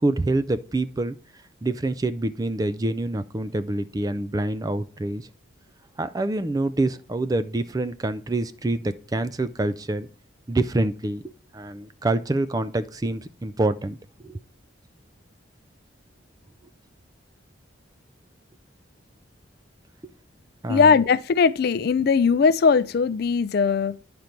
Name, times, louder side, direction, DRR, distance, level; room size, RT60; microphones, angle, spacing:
voice 1, 0.0-1.2 1.6-5.3 6.0-10.1 10.5-11.2 11.5-14.0 14.2-14.4 20.6-21.0, right 2 dB, 20° right, 0.4 m, -26 dB
voice 2, 20.7-24.0, left 5 dB, 50° left, 0.3 m, -19 dB
9.6 x 5.2 x 4.4 m
head